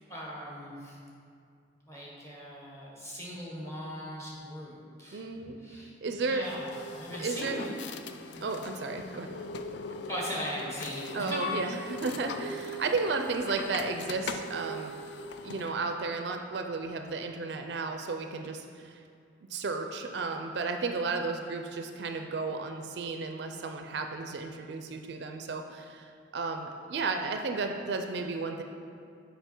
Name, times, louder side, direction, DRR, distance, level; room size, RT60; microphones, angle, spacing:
voice 1, 0.1-1.0 1.9-5.2 5.6-5.9 6.2-7.8 8.1-8.4 10.1-11.4, equal, 15° left, -5 dB, 1.3 m, -39 dB
voice 2, 5.1-6.5 7.2-7.6 8.4-9.4 11.1-15.0 15.4-19.0 19.5-28.6, right 3 dB, 60° right, 5 dB, 0.4 m, -33 dB
sound 1, 6.4-15.8, left 3 dB, 65° left, 0.3 m, -40 dB
6.8 x 5.2 x 4.4 m, 2.4 s
head